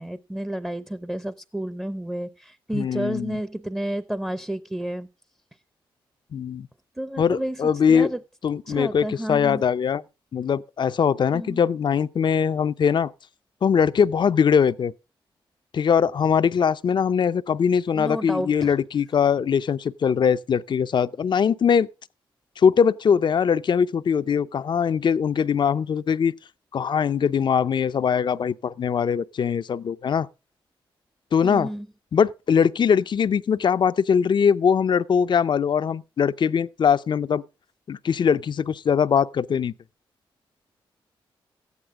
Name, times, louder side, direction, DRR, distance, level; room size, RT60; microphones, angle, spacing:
voice 1, 0.0-5.1 7.0-8.2 8.7-9.6 11.3-11.6 17.9-18.7 31.4-31.9, right 1 dB, 5° right, 0.6 m, -31 dB
voice 2, 2.7-3.4 6.3-6.7 7.2-8.1 8.4-10.0 10.3-13.1 13.6-14.9 15.7-21.9 22.6-26.3 26.7-30.3 31.3-31.7 32.1-37.4 37.9-39.7, left 7 dB, 55° left, 0.5 m, -21 dB
14.0 x 9.6 x 3.6 m
cardioid pair, 70°, 10 cm